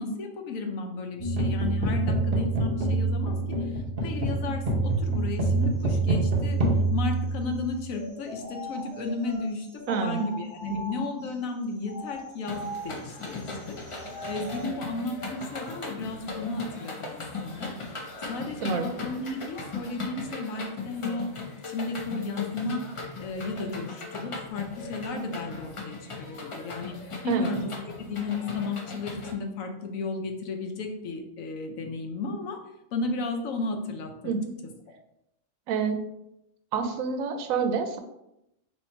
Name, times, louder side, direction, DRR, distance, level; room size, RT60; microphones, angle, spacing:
voice 1, 0.0-6.6 6.9-18.0 18.3-21.3 21.7-22.8 23.2-27.0 27.2-27.7 28.0-32.6 32.9-34.3 34.9-35.0, left 3 dB, 80° left, 4 dB, 1.1 m, -34 dB
sound 1, 1.2-7.8, right 2 dB, 50° right, 0.9 m, -26 dB
sound 2, 7.9-11.3 11.8-14.7, equal, 25° right, 1.4 m, -41 dB
voice 2, 9.9-10.3 10.7-10.8 18.6-18.9 27.2-27.5 34.2-34.5 35.7-36.0 36.7-38.0, right 6 dB, 90° right, 7 dB, 1.0 m, -27 dB
sound 3, 12.5-29.3, left 3 dB, 45° left, 0.4 m, -38 dB
3.2 x 2.9 x 4.3 m, 0.85 s
omnidirectional pair, 1.4 m